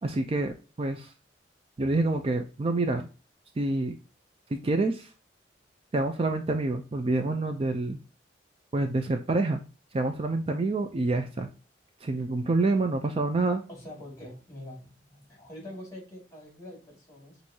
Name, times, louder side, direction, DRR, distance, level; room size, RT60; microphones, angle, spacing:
voice 1, 0.0-1.1 1.8-3.1 3.6-4.0 4.5-5.1 5.9-8.0 8.7-9.6 9.9-11.5 12.0-13.6, right 2 dB, 35° right, 6 dB, 0.4 m, -27 dB
voice 2, 13.7-17.4, left 1 dB, 20° left, -1 dB, 2.2 m, -45 dB
6.1 x 2.7 x 2.7 m, 0.33 s
head